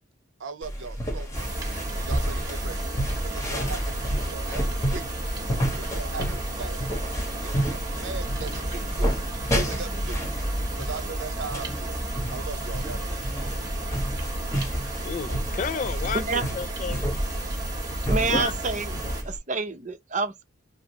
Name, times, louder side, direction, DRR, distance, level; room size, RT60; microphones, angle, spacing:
voice 1, 0.4-1.4 1.9-2.8 3.2-5.2 5.8-6.8 7.4-10.3 10.7-12.0 12.3-13.3, right 4 dB, 80° right, 0.6 m, -39 dB
sound 1, 0.6-19.4, equal, 15° left, 1.3 m, -31 dB
sound 2, 1.3-19.2, right 1 dB, 20° right, 1.6 m, -32 dB
voice 2, 15.0-17.0 18.3-18.5, left 6 dB, 40° left, 0.3 m, -31 dB
voice 3, 16.1-16.4 18.1-19.0 19.2-20.4, right 4 dB, 40° right, 0.7 m, -28 dB
4.9 x 2.0 x 2.8 m
head